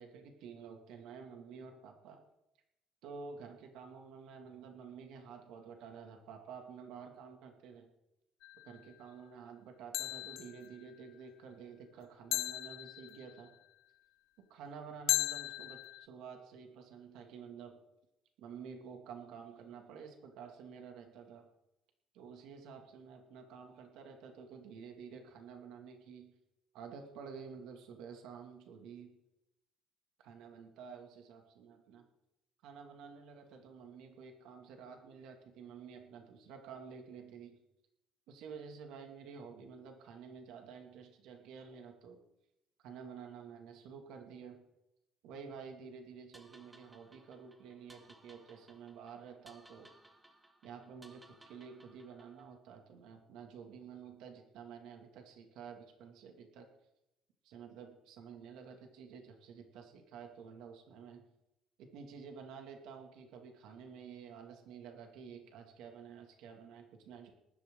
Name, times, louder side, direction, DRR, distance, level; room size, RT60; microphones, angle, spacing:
voice 1, 0.0-2.2 3.0-7.9 8.6-13.5 14.5-17.8 18.4-21.5 22.1-26.3 26.7-29.1 30.2-32.1 32.6-37.6 38.3-42.2 42.8-44.6 45.2-49.9 50.6-56.7 57.4-61.3 61.8-67.3, right 6 dB, 75° right, 3 dB, 2.5 m, -50 dB
sound 1, 8.4-8.8 9.9-10.7 12.3-13.4 15.1-16.1, left 17 dB, 90° left, 0.5 m, -36 dB
sound 2, 46.3-52.6, right 1 dB, 10° right, 1.5 m, -62 dB
19.5 x 12.0 x 3.9 m, 0.86 s
cardioid pair, 160°, 0 cm